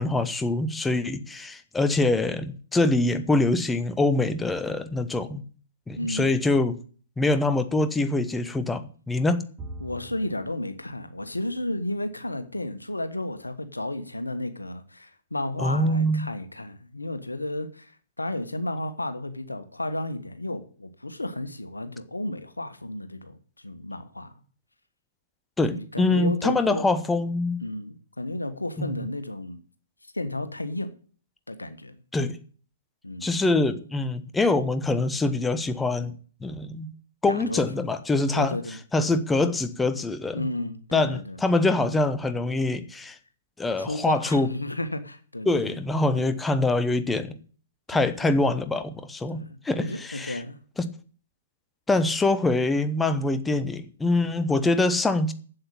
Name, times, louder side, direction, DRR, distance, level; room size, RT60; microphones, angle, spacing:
voice 1, 0.0-5.4 5.9-6.7 7.2-9.4 15.6-16.3 25.6-27.6 28.8-29.1 32.1-32.4 33.2-36.1 36.4-36.9 37.2-38.6 38.9-40.5 40.9-43.2 43.6-44.5 45.5-47.3 47.9-50.4 50.8-50.9 51.9-55.3, left 2 dB, 10° left, 10 dB, 0.9 m, -24 dB
voice 2, 5.9-6.4 9.8-23.4 23.6-24.3 25.7-26.9 27.6-29.6 30.1-30.9 31.5-32.0 33.0-33.3 37.2-37.6 38.3-39.1 40.3-41.4 43.8-45.8 46.1-46.3 47.9-48.4 49.3-49.5 49.8-50.6, left 1 dB, 85° left, 11 dB, 1.4 m, -33 dB
Bowed string instrument, 9.6-13.0, right 1 dB, 20° right, 2.5 m, -46 dB
8.0 x 7.9 x 8.9 m, 0.44 s
figure-of-eight pair, 120°, 0 cm